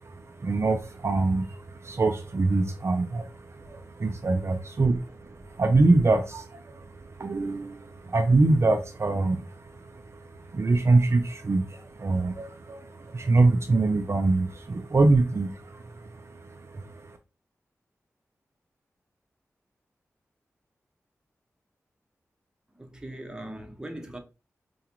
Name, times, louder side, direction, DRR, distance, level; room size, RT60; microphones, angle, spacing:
voice 1, 0.0-17.2, right 3 dB, 50° right, 0.5 m, -25 dB
voice 2, 22.8-24.2, right 1 dB, 15° right, 1.0 m, -40 dB
4.8 x 2.3 x 2.9 m
cardioid pair, 40°, 6 cm